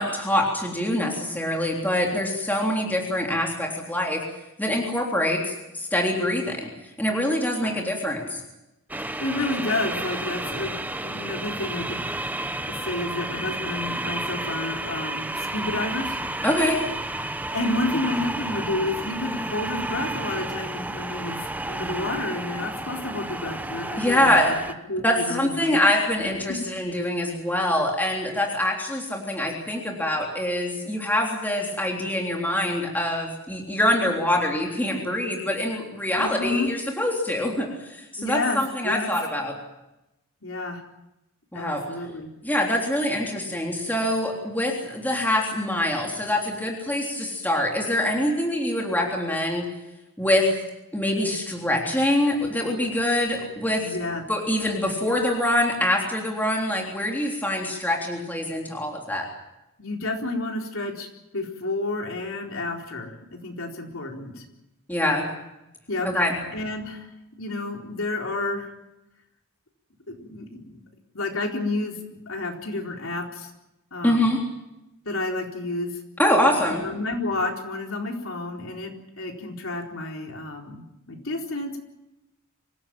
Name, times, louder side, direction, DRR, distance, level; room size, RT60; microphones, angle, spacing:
voice 1, 0.0-4.2 4.6-6.7 7.0-8.4 16.4-16.8 24.0-24.6 25.0-39.5 41.5-41.8 42.4-49.7 50.2-50.5 50.9-53.8 54.3-59.3 64.9-65.3 66.0-66.4 74.0-74.4 76.2-76.8, left 1 dB, 10° left, -1 dB, 3.6 m, -24 dB
sound 1, 8.9-24.7, right 1 dB, 10° right, 0.9 m, -31 dB
voice 2, 9.0-12.0 12.7-16.2 17.5-24.6 24.9-25.8 36.1-36.7 38.2-39.1 40.4-40.8 41.5-42.3 53.8-54.2 59.8-61.1 61.3-64.4 65.9-67.1 67.4-68.7 70.1-70.8 71.1-72.0 72.3-73.5 73.9-74.3 75.1-76.0 76.5-81.8, left 2 dB, 70° left, 1 dB, 4.2 m, -30 dB
25.5 x 16.5 x 9.1 m, 0.93 s
head